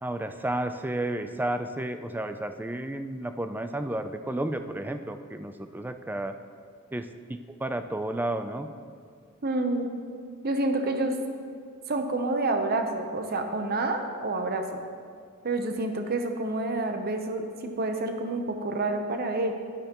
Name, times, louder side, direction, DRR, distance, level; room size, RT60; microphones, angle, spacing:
voice 1, 0.0-6.3 6.9-8.7, right 1 dB, 10° right, 8 dB, 0.4 m, -32 dB
voice 2, 9.4-9.9 10.4-11.1 11.9-14.7 15.4-19.5, right 2 dB, 45° right, 5 dB, 0.8 m, -28 dB
12.0 x 9.9 x 3.0 m, 2.2 s
head